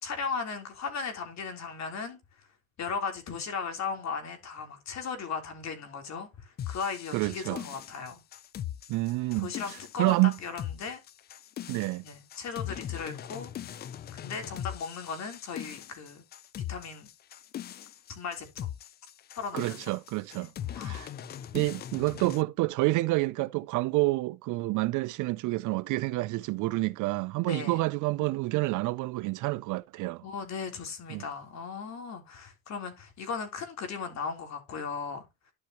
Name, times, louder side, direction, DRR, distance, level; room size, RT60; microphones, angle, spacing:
voice 1, 0.0-2.2 2.8-8.2 9.4-11.0 12.0-13.5 14.1-16.2 16.7-17.1 18.1-18.7 19.4-19.8 20.3-21.1 27.5-27.8 30.2-35.3, left 5 dB, 40° left, 3.5 m, -37 dB
sound 1, 6.6-22.4, left 10 dB, 25° left, 0.4 m, -40 dB
voice 2, 7.1-7.6 8.9-10.4 11.7-12.0 19.5-20.5 20.8-21.1 21.5-30.2 31.1-31.2, right 21 dB, 50° right, 0.4 m, -28 dB
12.0 x 5.7 x 3.0 m
supercardioid pair, 120°, 41 cm